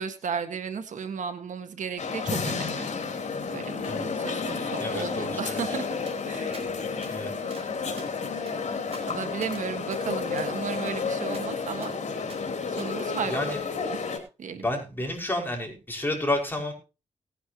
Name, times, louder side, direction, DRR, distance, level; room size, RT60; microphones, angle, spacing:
voice 1, 0.0-2.9 3.5-5.9 6.3-6.5 9.1-12.0 12.8-13.5 14.4-14.6, right 6 dB, 85° right, 8 dB, 1.7 m, -34 dB
sound 1, 2.0-14.2, left 5 dB, 70° left, 3.2 m, -31 dB
voice 2, 4.8-5.8 7.1-7.3 13.3-13.6 14.6-16.7, left 1 dB, 15° left, 1 dB, 5.5 m, -30 dB
sound 2, 5.6-5.7 6.1-6.2 6.5-6.7 7.0-7.1 7.5-7.7 8.0-9.6 9.9-10.0 10.4-10.5 10.9-11.0 11.3-11.5 11.8-11.9 12.3-12.4 12.8-12.9, right 3 dB, 50° right, 4.9 m, -48 dB
19.0 x 10.0 x 3.0 m, 0.30 s
wide cardioid pair, 95°, 13 cm